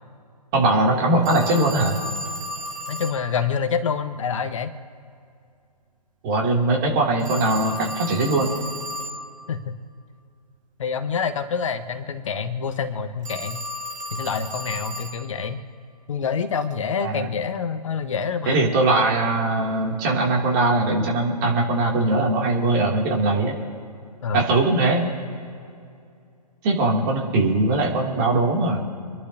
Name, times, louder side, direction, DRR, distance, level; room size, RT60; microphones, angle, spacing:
voice 1, 0.5-1.9 6.2-8.5 17.0-17.3 18.5-23.6 24.3-25.1 26.6-28.8, right 2 dB, 30° right, -1 dB, 2.9 m, -21 dB
Telephone, 1.2-3.2 7.2-9.2 13.2-15.2, equal, 50° right, 2.5 m, -33 dB
voice 2, 2.9-4.7 9.5-9.7 10.8-13.6 14.1-15.6 16.1-18.7 24.2-24.5, left 6 dB, 50° left, 8 dB, 1.2 m, -27 dB
27.5 x 11.5 x 2.8 m, 2.4 s
figure-of-eight pair, 140°, 21 cm